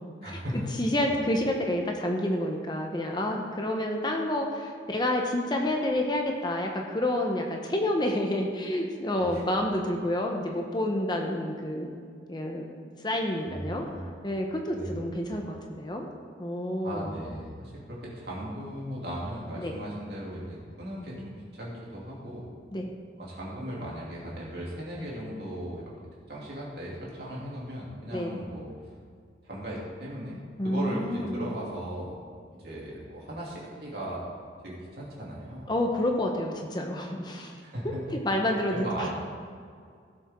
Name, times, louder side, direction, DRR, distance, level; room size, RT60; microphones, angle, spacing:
voice 1, 0.2-0.6 1.0-1.2 9.2-9.4 13.4-14.1 14.7-14.9 15.2-15.4 16.8-22.5 23.2-25.9 26.3-28.7 29.4-30.4 30.6-32.2 32.5-34.3 34.6-35.7 37.6-38.2 38.7-39.1, equal, 60° right, -5 dB, 3.0 m, -37 dB
voice 2, 0.8-11.9 12.3-13.9 14.2-16.1 16.4-17.1 19.6-19.7 22.7-22.9 28.1-28.4 30.6-31.4 35.7-37.5 38.2-38.8, left 1 dB, 25° left, 2 dB, 0.9 m, -29 dB
16.5 x 7.1 x 3.7 m, 2.2 s
head